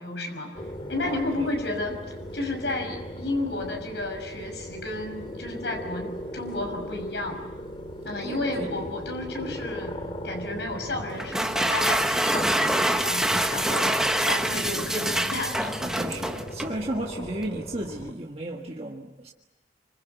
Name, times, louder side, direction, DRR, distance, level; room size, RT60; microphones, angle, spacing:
voice 1, 0.0-7.4 8.0-15.8, left 2 dB, 75° left, 6.1 m, -32 dB
sound 1, 0.5-18.1, equal, 30° left, 2.6 m, -38 dB
voice 2, 1.0-1.5 8.2-8.7 9.4-9.7 15.8-19.3, right 1 dB, 35° right, 1.6 m, -34 dB
sound 2, 11.2-16.8, right 1 dB, 5° right, 1.2 m, -25 dB
26.0 x 25.5 x 8.2 m
head